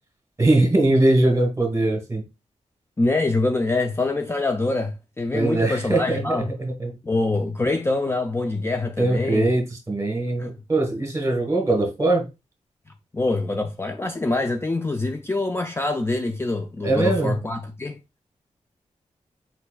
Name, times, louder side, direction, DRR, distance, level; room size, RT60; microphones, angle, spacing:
voice 1, 0.4-2.2 5.3-6.9 9.0-12.3 16.8-17.3, right 2 dB, 25° right, 1.5 m, -21 dB
voice 2, 3.0-6.5 7.0-9.5 10.4-10.5 13.1-18.0, left 2 dB, 20° left, 0.4 m, -25 dB
4.4 x 4.3 x 2.3 m
wide cardioid pair, 85°, 13 cm